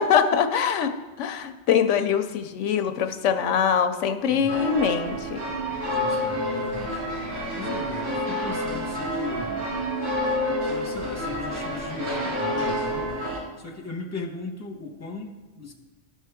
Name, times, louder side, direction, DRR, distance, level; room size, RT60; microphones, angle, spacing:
voice 1, 0.0-5.4, left 7 dB, 80° left, 9 dB, 0.9 m, -23 dB
voice 2, 4.3-4.6 5.9-7.0 7.5-9.7 10.6-13.2 13.6-15.7, left 3 dB, 15° left, 0 dB, 1.0 m, -37 dB
sound 1, 4.5-13.4, equal, 80° right, 3.5 m, -28 dB
12.5 x 5.5 x 3.5 m, 1.2 s
omnidirectional pair, 1.2 m